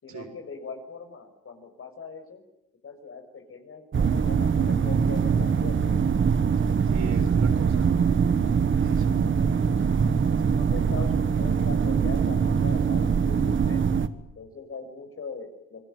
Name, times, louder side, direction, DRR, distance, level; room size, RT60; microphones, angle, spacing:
voice 1, 0.0-2.4 2.8-6.0 10.4-14.0 14.3-15.9, left 5 dB, 45° left, 6 dB, 6.6 m, -41 dB
sound 1, 3.9-14.1, right 6 dB, 40° right, 1.6 m, -23 dB
voice 2, 6.9-7.9 8.8-9.7, right 5 dB, 65° right, 4 dB, 6.8 m, -41 dB
28.0 x 20.5 x 9.3 m, 0.84 s
cardioid pair, 90°, 30 cm